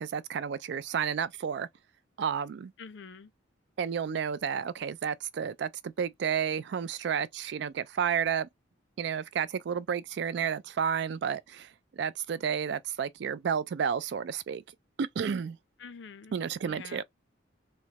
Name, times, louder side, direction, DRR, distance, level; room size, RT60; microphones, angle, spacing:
voice 1, 0.0-1.7 2.2-2.7 3.8-8.5 9.0-14.6 15.0-15.6 16.3-17.0, right 7 dB, 60° right, 0.3 m, -31 dB
voice 2, 2.8-3.3 15.8-16.4 16.6-17.0, left 5 dB, 65° left, 0.5 m, -46 dB
3.1 x 2.2 x 2.8 m
head